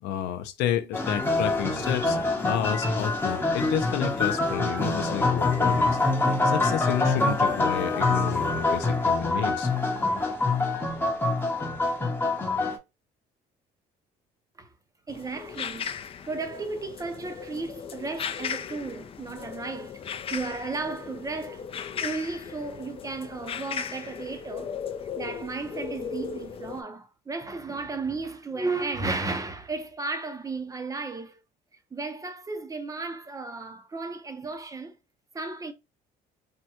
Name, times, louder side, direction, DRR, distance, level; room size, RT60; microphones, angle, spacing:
voice 1, 0.0-2.2 2.4-6.0 6.4-9.7, left 10 dB, 85° left, 0.5 m, -31 dB
sound 1, 0.9-12.8, left 3 dB, 15° left, 0.8 m, -25 dB
sound 2, 15.1-26.8, left 7 dB, 35° left, 0.4 m, -37 dB
voice 2, 15.1-16.0 16.2-21.6 22.0-24.7 25.2-31.4 31.9-34.9 35.3-35.7, right 3 dB, 20° right, 0.6 m, -34 dB
3.5 x 2.2 x 2.8 m
cardioid pair, 110°, 17 cm